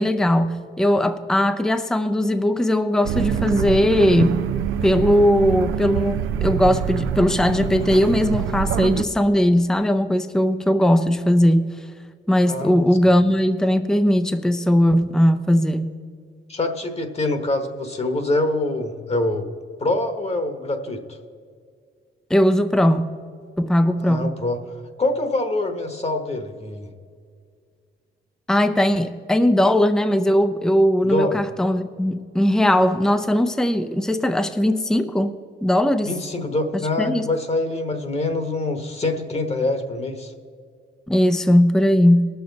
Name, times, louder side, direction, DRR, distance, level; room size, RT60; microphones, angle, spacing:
voice 1, 0.0-4.4 4.8-11.7 12.3-15.9 22.3-23.1 23.6-24.3 28.5-35.3 35.6-36.1 37.0-37.3 41.1-42.3, equal, 5° left, 10 dB, 0.5 m, -19 dB
sound 1, 3.0-9.0, right 9 dB, 85° right, 0.5 m, -25 dB
voice 2, 12.5-12.9 16.5-19.5 19.8-21.0 24.0-24.6 25.0-26.9 31.0-31.4 36.1-40.3, left 2 dB, 30° left, 7 dB, 1.2 m, -25 dB
19.0 x 6.9 x 4.0 m, 2.1 s
cardioid pair, 90°, 20 cm